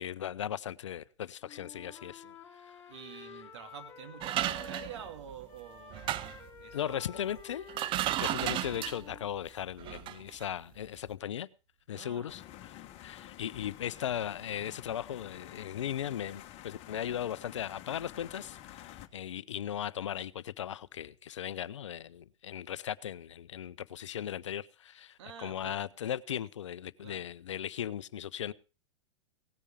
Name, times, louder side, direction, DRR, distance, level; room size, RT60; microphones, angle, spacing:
voice 1, 0.0-2.2 2.5-2.8 6.7-7.7 8.2-11.5 11.9-28.5, left 10 dB, 75° left, 0.6 m, -37 dB
Wind instrument woodwind instrument, 1.4-5.2 5.5-9.3, left 5 dB, 15° left, 3.6 m, -50 dB
voice 2, 1.7-2.4 2.9-7.3 11.9-12.3 25.2-25.8 27.0-27.3, right 8 dB, 65° right, 2.7 m, -48 dB
sound 1, 4.2-5.4 5.9-6.5 7.4-7.5 7.7-9.1 9.8-10.2 10.4-10.5, right 13 dB, 35° right, 0.6 m, -34 dB
sound 2, 12.3-19.1, left 13 dB, 40° left, 1.4 m, -50 dB
17.5 x 10.0 x 4.9 m
hypercardioid pair, 95°, 16 cm